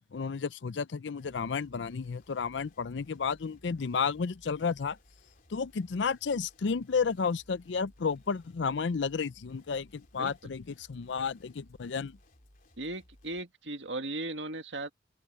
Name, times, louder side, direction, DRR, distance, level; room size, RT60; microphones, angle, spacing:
voice 1, 0.1-5.0 5.5-12.2, left 5 dB, 70° left, 0.5 m, -32 dB
sound 1, 1.2-13.4, left 1 dB, 50° left, 3.5 m, -61 dB
voice 2, 12.8-14.9, right 2 dB, 75° right, 2.1 m, -37 dB
open air
head